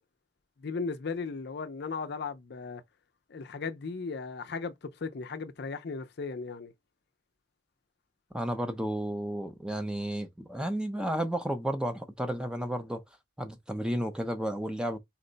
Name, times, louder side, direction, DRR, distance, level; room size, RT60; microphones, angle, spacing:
voice 1, 0.6-2.8 3.3-6.7, left 4 dB, 55° left, 0.5 m, -36 dB
voice 2, 8.3-13.0 13.4-15.0, right 1 dB, 5° right, 0.5 m, -32 dB
4.4 x 2.1 x 3.8 m
head